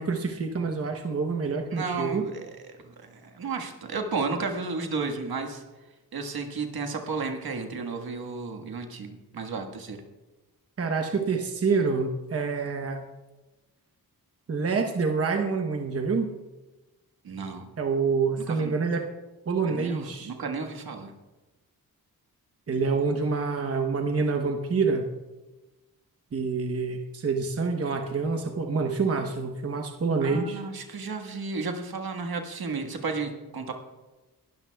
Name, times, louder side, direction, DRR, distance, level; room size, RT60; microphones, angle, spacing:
voice 1, 0.0-2.3 10.8-13.0 14.5-16.3 17.8-19.1 19.5-20.3 22.7-25.0 26.3-30.6, right 4 dB, 40° right, 3 dB, 0.9 m, -27 dB
voice 2, 1.7-5.6 6.1-10.0 17.2-17.7 18.5-18.8 19.7-21.1 30.2-33.7, right 4 dB, 70° right, 4 dB, 1.6 m, -33 dB
20.0 x 12.5 x 2.3 m, 1.1 s
wide cardioid pair, 125°, 38 cm